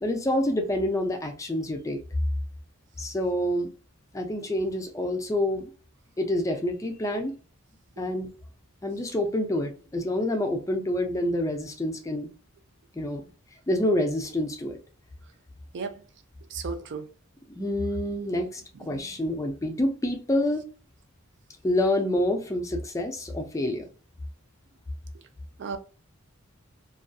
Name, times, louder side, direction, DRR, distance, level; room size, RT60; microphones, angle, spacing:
voice 1, 0.0-2.0 3.0-3.7 4.1-5.7 6.2-7.4 8.0-8.3 8.8-12.3 12.9-13.3 13.7-14.8 17.5-20.7 21.6-23.8, left 1 dB, 15° left, 0.4 m, -27 dB
voice 2, 16.5-17.1 18.8-19.0 25.6-25.8, right 5 dB, 55° right, 0.4 m, -34 dB
2.5 x 2.3 x 2.2 m
head